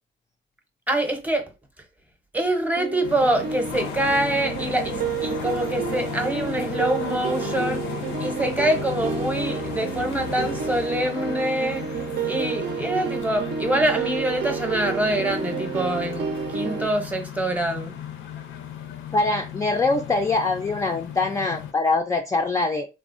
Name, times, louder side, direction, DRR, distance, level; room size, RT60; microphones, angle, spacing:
voice 1, 0.9-1.4 2.3-7.8 8.2-11.8 12.2-17.9, right 1 dB, 10° right, 0.7 m, -25 dB
sound 1, 2.8-16.9, right 7 dB, 60° right, 0.5 m, -30 dB
sound 2, 3.0-21.7, left 8 dB, 80° left, 0.5 m, -35 dB
voice 2, 19.1-22.9, left 3 dB, 15° left, 0.3 m, -23 dB
3.4 x 2.1 x 2.5 m
cardioid pair, 90°, 20 cm